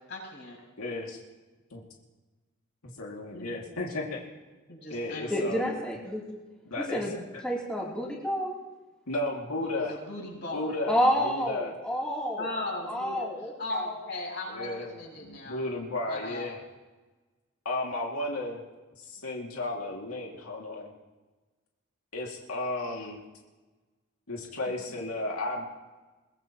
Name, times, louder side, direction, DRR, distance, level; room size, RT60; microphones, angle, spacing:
voice 1, 0.1-0.6 3.3-3.6 4.7-5.9 9.8-10.8 12.4-13.3 13.6-14.7 14.9-15.6 16.1-16.5 24.7-25.0, left 2 dB, 55° left, -1 dB, 7.2 m, -37 dB
voice 2, 0.8-1.2 1.7-1.8 3.0-4.2 4.9-5.7 6.7-7.0 9.1-9.9 10.5-11.0 11.2-11.7 14.5-14.9 15.2-16.6 17.6-18.6 19.0-20.9 22.1-23.2 24.3-25.6, left 2 dB, 90° left, -1 dB, 2.3 m, -33 dB
voice 3, 5.3-6.4 6.9-7.1 7.4-8.5 10.9-12.5 12.9-13.9, equal, 5° left, -5 dB, 3.2 m, -29 dB
22.5 x 21.0 x 3.0 m, 1.2 s
head